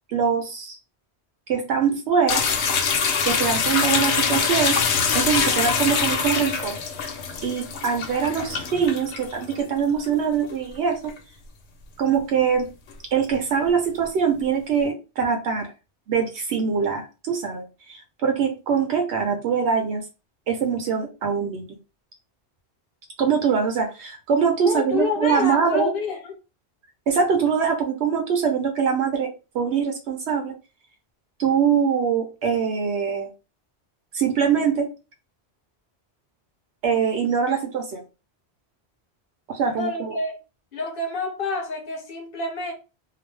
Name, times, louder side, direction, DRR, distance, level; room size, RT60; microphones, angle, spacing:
voice 1, 0.1-0.8 1.5-2.4 3.2-6.8 7.4-11.1 12.0-12.7 13.1-15.7 16.1-20.0 20.5-21.8 23.2-25.9 27.1-30.5 31.4-33.3 34.1-34.9 36.8-38.0 39.5-40.2, right 6 dB, 80° right, 0.9 m, -23 dB
sound 1, 2.3-9.6 10.1-10.2 11.0-11.2 12.9-13.0, left 6 dB, 90° left, 0.9 m, -24 dB
voice 2, 24.6-26.3 39.7-40.3 40.7-42.7, left 4 dB, 60° left, 0.8 m, -28 dB
2.4 x 2.0 x 3.1 m
omnidirectional pair, 1.1 m